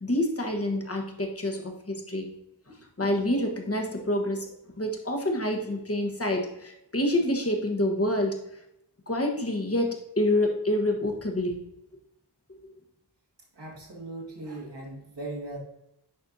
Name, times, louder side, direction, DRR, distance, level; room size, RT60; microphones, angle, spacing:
voice 1, 0.0-2.3 2.7-8.3 9.1-11.6, left 1 dB, 35° left, 3 dB, 1.3 m, -27 dB
voice 2, 13.5-15.6, right 2 dB, 80° right, -2 dB, 2.0 m, -38 dB
10.5 x 4.3 x 2.7 m, 0.83 s
wide cardioid pair, 65°, 41 cm